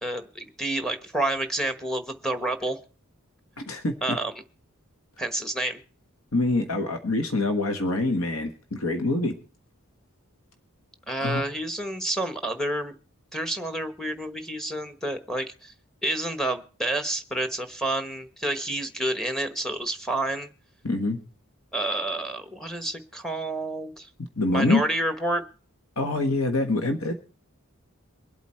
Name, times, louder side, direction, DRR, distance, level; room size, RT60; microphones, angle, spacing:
voice 1, 0.0-2.8 4.0-4.3 5.2-5.8 11.1-12.9 13.3-15.7 16.0-20.5 21.7-24.1 24.5-25.4, right 1 dB, 5° left, 8 dB, 1.2 m, -29 dB
voice 2, 3.6-3.9 6.3-9.4 11.2-11.4 20.8-21.2 24.4-24.8 26.0-27.2, left 2 dB, 70° left, 6 dB, 1.5 m, -25 dB
24.0 x 8.2 x 4.4 m, 0.38 s
head